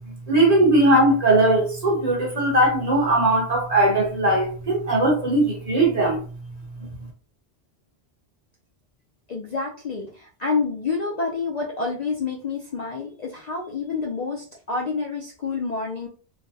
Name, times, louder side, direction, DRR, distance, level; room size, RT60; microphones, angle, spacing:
voice 1, 0.3-6.2, right 1 dB, 40° right, 1.1 m, -19 dB
voice 2, 9.3-16.1, left 4 dB, 50° left, 0.5 m, -28 dB
3.3 x 2.1 x 2.7 m
omnidirectional pair, 1.1 m